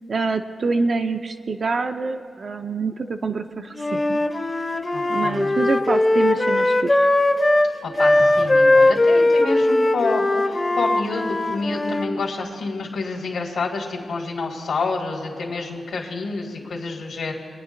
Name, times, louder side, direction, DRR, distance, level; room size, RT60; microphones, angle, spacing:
voice 1, 0.1-4.2 5.1-7.1, right 4 dB, 40° right, 6 dB, 0.4 m, -26 dB
Wind instrument woodwind instrument, 3.7-12.1, left 2 dB, 25° left, 0.6 m, -19 dB
voice 2, 4.9-5.5 7.8-17.3, left 3 dB, 70° left, -1 dB, 1.9 m, -28 dB
23.5 x 9.5 x 2.5 m, 2.5 s
wide cardioid pair, 125°, 0 cm